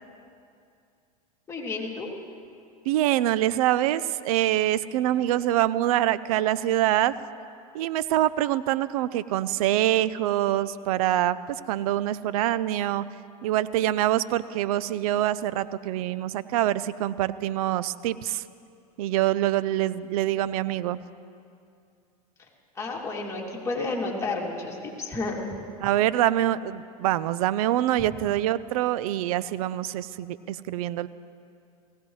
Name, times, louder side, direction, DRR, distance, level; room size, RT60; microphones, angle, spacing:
voice 1, 1.5-2.1 22.4-22.5 22.7-25.6, left 3 dB, 15° left, -3 dB, 2.7 m, -31 dB
voice 2, 2.9-7.1 7.7-13.0 13.4-18.4 19.0-21.0 25.8-31.1, right 13 dB, 65° right, 17 dB, 0.5 m, -25 dB
19.0 x 16.5 x 3.2 m, 2.4 s
hypercardioid pair, 110°, 20 cm